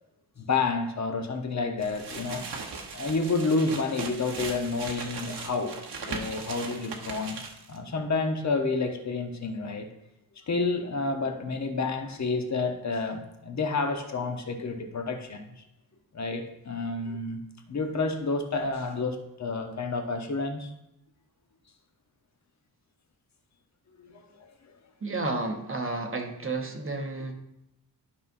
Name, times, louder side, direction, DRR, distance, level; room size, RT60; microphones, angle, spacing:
voice 1, 0.4-2.4 2.9-5.7 6.1-7.4 7.7-9.9 10.5-15.6 16.1-17.4 17.7-20.7 24.0-24.5, left 3 dB, 45° left, 5 dB, 1.0 m, -29 dB
sound 1, 1.8-7.8, right 4 dB, 80° right, 1.2 m, -38 dB
voice 2, 25.0-27.3, right 3 dB, 30° right, 4 dB, 0.9 m, -31 dB
12.0 x 5.5 x 2.6 m, 0.85 s
wide cardioid pair, 130°, 40 cm